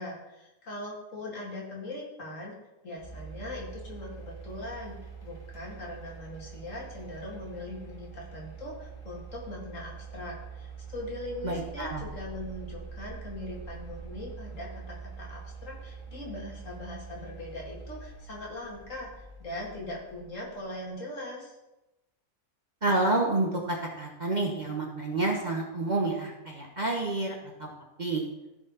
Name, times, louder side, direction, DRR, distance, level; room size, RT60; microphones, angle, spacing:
voice 1, 0.0-2.6 2.8-5.0 5.2-21.6, left 1 dB, 55° left, -3 dB, 2.5 m, -40 dB
sound 1, 3.0-20.7, right 5 dB, 35° left, 2.3 m, -44 dB
voice 2, 11.4-12.0 22.8-27.3 27.6-27.7 28.0-28.2, right 2 dB, 30° right, -1 dB, 1.2 m, -29 dB
14.5 x 4.9 x 4.2 m, 0.97 s
omnidirectional pair, 1.6 m